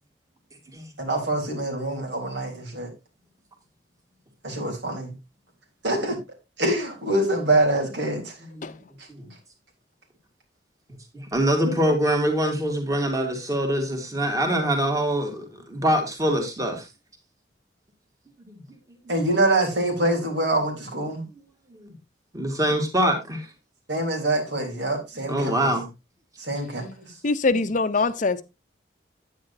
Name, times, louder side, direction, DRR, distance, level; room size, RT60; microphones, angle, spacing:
voice 1, 1.0-2.9 4.4-5.1 5.8-6.2 6.6-8.4 9.0-9.1 11.6-11.7 19.1-21.3 23.9-25.7 26.4-27.2, right 2 dB, 85° right, 3.7 m, -25 dB
voice 2, 11.1-16.8 18.5-18.6 21.8-21.9 22.3-23.5 25.3-25.9, right 1 dB, 20° right, 2.2 m, -24 dB
voice 3, 27.2-28.4, left 3 dB, 45° left, 0.7 m, -23 dB
9.6 x 9.3 x 2.7 m
head